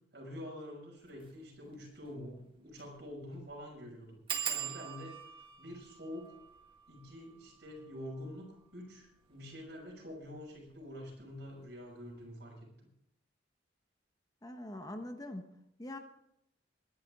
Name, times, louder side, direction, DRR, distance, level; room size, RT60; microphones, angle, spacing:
voice 1, 0.1-4.2 4.4-5.2 5.6-6.3 6.9-12.9, left 1 dB, 60° right, -1 dB, 6.4 m, -47 dB
sound 1, 1.1-1.3 1.7-1.8 2.0-2.1 2.7-3.0 3.2-3.3 4.3-9.5 10.2-10.7 11.1-11.4 11.7-11.8, right 8 dB, 30° right, 1.8 m, -43 dB
voice 2, 14.4-15.5 15.8-16.0, left 1 dB, 20° left, 6 dB, 1.1 m, -43 dB
22.5 x 11.0 x 3.7 m, 0.76 s
head